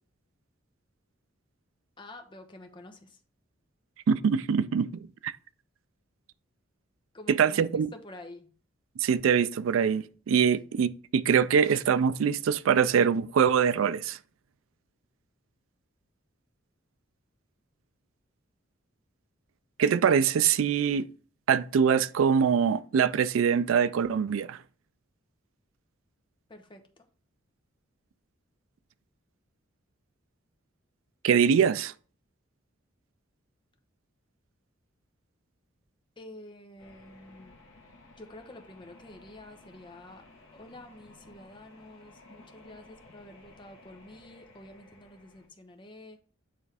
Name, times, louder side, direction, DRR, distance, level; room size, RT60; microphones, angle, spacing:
voice 1, 2.0-3.2 7.1-8.5 26.5-27.1 36.2-37.6 38.2-40.2 40.5-46.2, left 1 dB, 25° left, 0.8 m, -49 dB
voice 2, 4.1-5.3 7.3-7.9 9.0-14.2 19.8-21.1 21.5-24.6 31.2-31.9, right 7 dB, 80° right, 0.4 m, -24 dB
sound 1, 36.8-45.5, left 2 dB, 70° left, 1.3 m, -55 dB
8.5 x 3.5 x 3.4 m
head